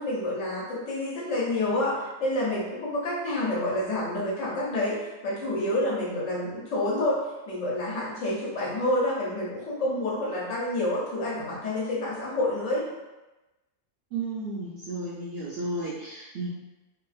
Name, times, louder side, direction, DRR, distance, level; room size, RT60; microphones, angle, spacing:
voice 1, 0.0-1.9 2.2-5.0 5.2-7.2 7.5-12.8, left 1 dB, 65° left, -6 dB, 1.1 m, -28 dB
voice 2, 14.1-16.5, right 2 dB, 65° right, -8 dB, 0.6 m, -33 dB
2.9 x 2.4 x 2.4 m, 1.1 s
omnidirectional pair, 1.5 m